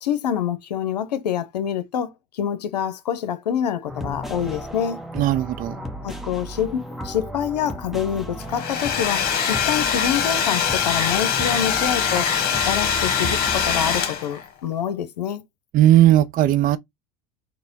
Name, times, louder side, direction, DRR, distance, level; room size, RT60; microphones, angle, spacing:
voice 1, 0.0-5.0 6.0-12.3 12.7-15.4, left 9 dB, 85° left, 0.6 m, -26 dB
sound 1, 3.9-14.0, equal, ahead, 0.9 m, -34 dB
voice 2, 5.2-5.8 15.7-16.8, right 13 dB, 45° right, 0.5 m, -17 dB
Domestic sounds home sounds, 8.4-14.5, left 7 dB, 50° left, 1.2 m, -23 dB
4.0 x 2.1 x 3.9 m
hypercardioid pair, 80°, 20 cm